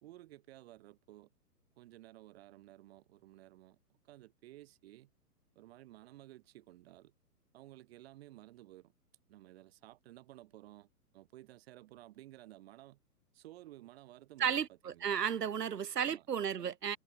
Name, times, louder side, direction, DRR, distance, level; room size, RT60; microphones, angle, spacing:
voice 1, 0.0-1.3 1.8-3.8 4.0-5.1 5.6-7.1 7.5-8.9 9.3-13.0 13.3-15.2 16.0-16.3 16.6-16.8, right 16 dB, 40° right, 1.9 m, -55 dB
voice 2, 14.4-17.0, right 8 dB, 80° right, 0.8 m, -33 dB
figure-of-eight pair, 120°, 47 cm